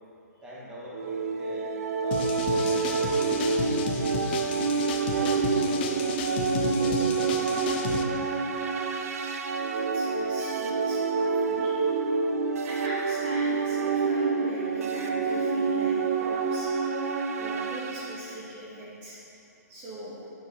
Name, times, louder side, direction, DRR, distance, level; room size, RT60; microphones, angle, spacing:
voice 1, 0.4-1.7 2.0-6.0 6.6-8.2, equal, 10° right, -8 dB, 1.3 m, -44 dB
sound 1, 0.9-18.2, right 4 dB, 55° right, 0.6 m, -27 dB
sound 2, 2.1-8.0, left 6 dB, 35° left, 0.5 m, -33 dB
voice 2, 9.7-11.8 12.6-16.9 17.4-19.2 19.7-20.2, right 1 dB, 30° right, -7 dB, 1.2 m, -41 dB
6.5 x 4.8 x 5.2 m, 2.8 s
hypercardioid pair, 140°, 9 cm